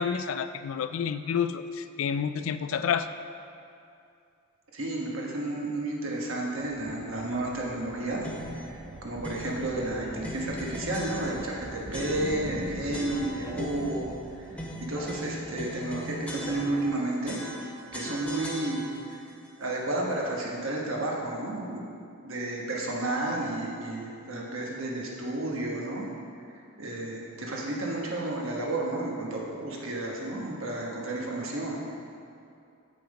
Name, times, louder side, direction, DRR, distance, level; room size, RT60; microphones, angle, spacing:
voice 1, 0.0-3.1, left 7 dB, 70° left, 12 dB, 0.3 m, -29 dB
voice 2, 4.7-14.1 14.4-17.4 17.9-18.8 19.1-19.2 19.6-22.0 22.2-26.1 26.8-31.8, right 2 dB, 70° right, -2 dB, 1.3 m, -32 dB
sound 1, 6.6-16.9, right 1 dB, 20° left, 1.3 m, -48 dB
sound 2, 7.9-16.1, right 1 dB, 30° right, 0.4 m, -43 dB
sound 3, 8.2-8.7 9.2-9.6 10.2-11.6 11.9-12.6 12.9-14.0 14.6-17.0 17.3-19.1, equal, 5° left, 0.7 m, -39 dB
7.2 x 5.9 x 5.0 m, 2.5 s
head